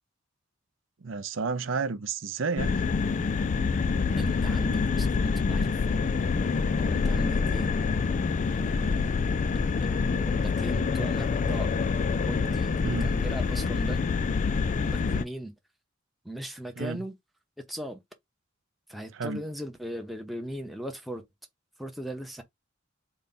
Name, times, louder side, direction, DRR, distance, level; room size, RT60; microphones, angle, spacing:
voice 1, 1.0-2.7 12.8-13.1 16.8-17.0 19.2-19.4, right 4 dB, 70° right, 0.6 m, -31 dB
sound 1, 2.6-15.2, left 4 dB, 40° left, 0.3 m, -26 dB
voice 2, 4.2-6.1 6.8-7.7 8.5-11.8 12.3-14.0 14.9-15.5 16.2-17.2 17.6-18.0 18.9-21.3 21.8-22.4, right 1 dB, ahead, 0.7 m, -39 dB
4.0 x 2.2 x 3.9 m
head